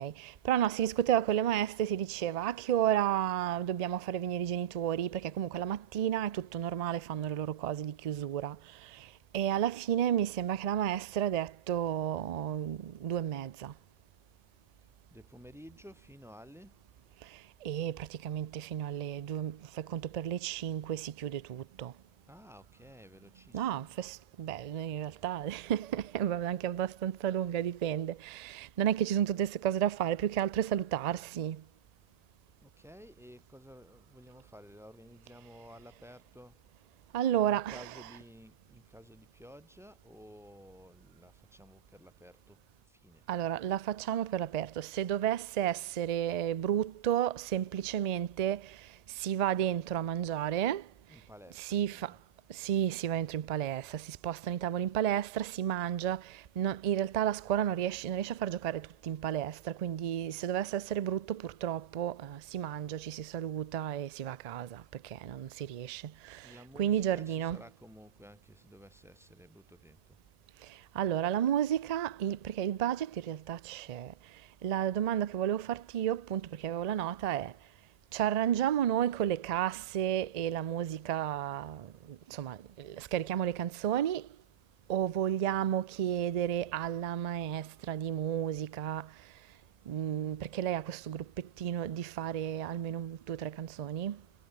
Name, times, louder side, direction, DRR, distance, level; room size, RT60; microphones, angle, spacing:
voice 1, 0.0-8.6 9.3-13.7 17.6-21.9 23.5-31.6 37.1-37.9 43.3-48.6 49.2-50.8 51.6-52.1 52.5-64.8 65.2-66.0 66.3-66.4 66.8-67.6 71.0-74.1 74.6-77.5 78.1-81.9 82.3-84.2 84.9-89.1 89.9-91.2 91.6-94.2, right 10 dB, 55° right, 0.4 m, -32 dB
voice 2, 15.1-16.8 22.3-23.9 32.6-36.6 37.3-42.6 42.9-43.3 51.1-52.2 66.4-70.2, equal, ahead, 6.7 m, -54 dB
omnidirectional pair, 1.2 m